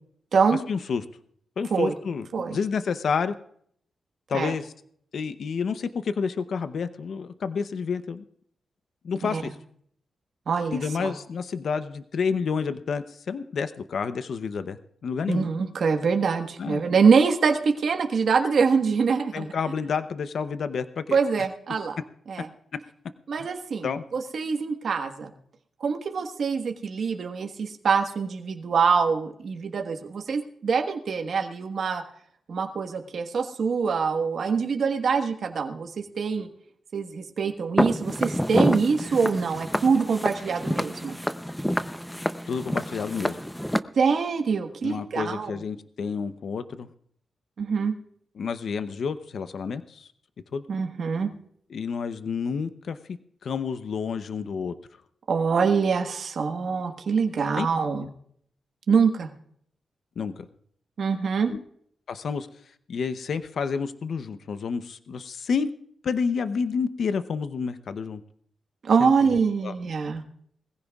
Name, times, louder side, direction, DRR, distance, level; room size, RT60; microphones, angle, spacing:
voice 1, 0.7-1.0 1.6-3.3 4.3-4.7 5.1-8.2 9.0-9.6 10.7-14.8 15.0-15.4 16.6-16.8 19.3-21.5 23.8-24.0 42.5-43.4 44.8-46.9 48.4-50.1 50.5-50.6 51.7-54.7 57.5-57.7 58.0-58.1 60.2-60.5 61.5-61.6 62.1-62.5 62.9-65.7 66.0-68.2 69.0-69.7, left 5 dB, 65° left, 11 dB, 0.7 m, -29 dB
voice 2, 10.5-11.1 15.3-19.5 21.1-22.0 22.3-22.5 23.3-25.3 25.8-32.0 32.5-36.5 36.9-41.2 43.9-45.5 47.6-47.9 50.7-51.3 55.3-58.1 58.9-59.3 61.0-61.5 68.8-70.2, right 5 dB, 65° right, 4 dB, 1.4 m, -24 dB
Walk footsteps, 37.8-43.8, equal, 5° left, 0.6 m, -27 dB
21.5 x 15.5 x 2.4 m, 0.64 s
cardioid pair, 95°, 0 cm